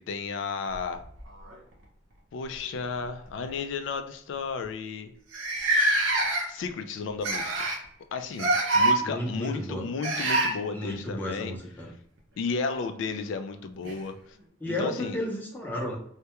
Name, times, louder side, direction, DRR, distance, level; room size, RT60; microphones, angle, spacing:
voice 1, 0.1-1.0 2.3-5.1 6.5-7.7 8.1-11.5 12.4-14.4 14.7-15.2, left 4 dB, 65° left, 9 dB, 0.3 m, -33 dB
sound 1, 0.7-1.8 2.9-3.1 3.4-3.6 4.3-4.4 4.6-4.7 5.3-6.7 7.2-7.8 8.3-9.0 10.0-10.5 12.7-12.8 13.8-13.9, right 2 dB, 80° right, 0.6 m, -25 dB
voice 2, 9.0-9.8 10.7-11.9 14.6-16.0, equal, 10° left, -2 dB, 0.5 m, -33 dB
2.2 x 2.1 x 2.8 m, 0.66 s
head